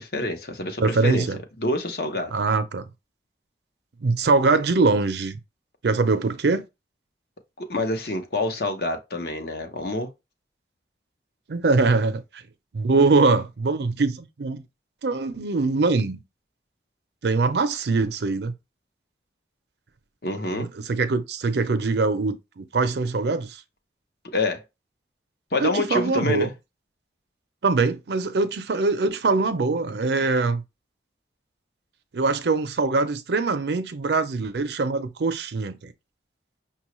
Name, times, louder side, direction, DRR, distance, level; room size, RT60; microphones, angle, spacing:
voice 1, 0.0-1.3 1.6-2.3 7.6-10.1 20.2-20.7 24.3-24.6 25.5-26.5, left 2 dB, 55° left, 0.8 m, -27 dB
voice 2, 0.8-1.4 2.3-2.9 4.0-5.4 5.8-6.7 11.5-12.4 12.7-14.6 15.0-16.2 17.2-18.5 20.5-23.6 25.6-26.5 27.6-30.6 32.1-35.9, right 3 dB, 65° right, 0.5 m, -23 dB
5.8 x 2.3 x 3.0 m
head